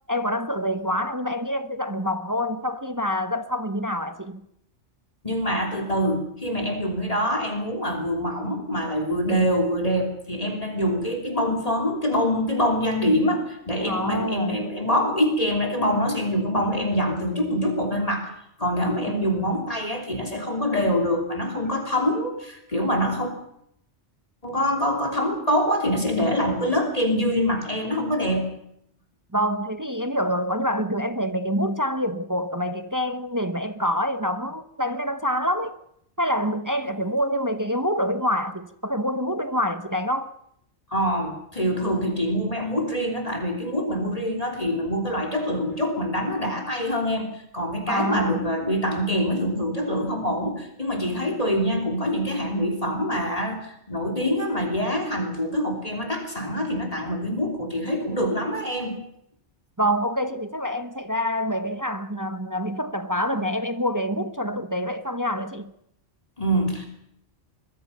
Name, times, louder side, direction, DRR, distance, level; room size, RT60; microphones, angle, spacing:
voice 1, 0.1-4.4 13.9-14.6 19.1-19.5 29.3-35.7 36.2-40.3 47.9-48.5 59.8-65.7, equal, 15° right, 1.0 m, -26 dB
voice 2, 5.2-18.3 18.6-23.3 24.4-28.6 40.9-59.0 66.4-66.9, equal, 30° left, 3.4 m, -25 dB
24.0 x 21.5 x 5.7 m
omnidirectional pair, 1.2 m